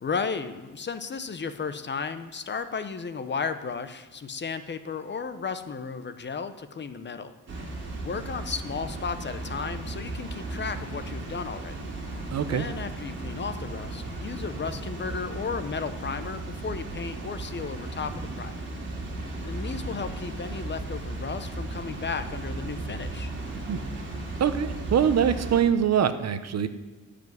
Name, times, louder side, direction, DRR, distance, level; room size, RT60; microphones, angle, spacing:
voice 1, 0.0-7.3 8.0-11.8 12.5-18.6 19.4-23.3, left 5 dB, 35° left, 11 dB, 0.7 m, -34 dB
Water, 7.5-25.6, right 2 dB, 35° right, 2.7 m, -35 dB
voice 2, 12.3-12.7 23.7-23.8 24.4-26.7, right 8 dB, 55° right, 11 dB, 0.8 m, -23 dB
15.5 x 5.1 x 9.3 m, 1.2 s
wide cardioid pair, 150°, 32 cm